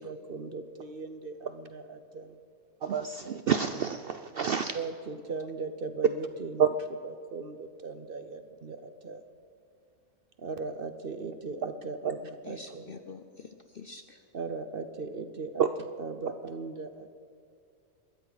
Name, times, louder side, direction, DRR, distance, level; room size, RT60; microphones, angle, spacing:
voice 1, 0.0-2.4 4.7-6.7 7.0-9.2 10.4-12.9 14.3-17.1, right 4 dB, 45° right, 9 dB, 0.8 m, -38 dB
voice 2, 2.8-4.8 6.6-6.7 15.6-15.7, right 7 dB, 85° right, 9 dB, 0.5 m, -27 dB
voice 3, 12.4-14.2, left 4 dB, 55° left, 7 dB, 0.6 m, -46 dB
21.0 x 13.5 x 4.1 m, 2.3 s
omnidirectional pair, 1.6 m